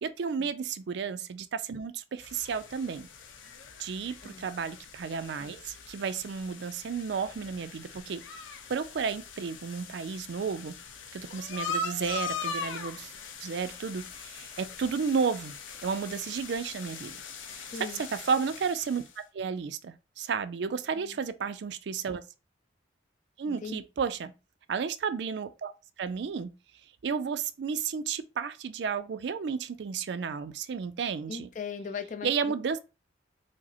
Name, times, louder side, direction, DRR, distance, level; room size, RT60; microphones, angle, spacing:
voice 1, 0.0-3.1 3.8-8.2 8.7-10.7 11.1-13.1 13.4-15.5 15.8-17.2 17.5-17.7 18.1-19.0 19.3-22.2 23.4-24.3 24.7-25.7 26.0-26.5 27.0-31.5 32.2-32.8, right 6 dB, 65° right, 0.4 m, -32 dB
sound 1, 2.2-19.2, left 4 dB, 85° left, 0.6 m, -41 dB
voice 2, 17.7-18.1 20.9-21.2 23.5-23.8 31.3-32.5, left 6 dB, 40° left, 0.4 m, -39 dB
4.9 x 2.0 x 2.8 m
head